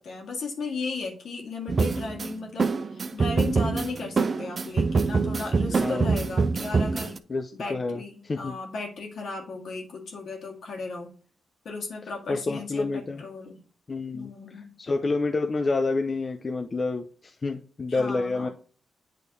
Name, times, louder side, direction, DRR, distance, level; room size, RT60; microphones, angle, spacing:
voice 1, 0.0-7.2 7.5-11.1 11.6-13.6 14.1-14.7 17.9-18.5, left 3 dB, 75° left, 0 dB, 2.0 m, -36 dB
sound 1, 1.7-7.2, right 4 dB, 50° right, 0.6 m, -25 dB
voice 2, 5.8-6.1 7.3-8.5 12.3-13.2 13.9-14.3 14.8-18.5, left 3 dB, 45° left, 5 dB, 0.6 m, -28 dB
8.4 x 3.3 x 4.2 m, 0.42 s
supercardioid pair, 55°, 0 cm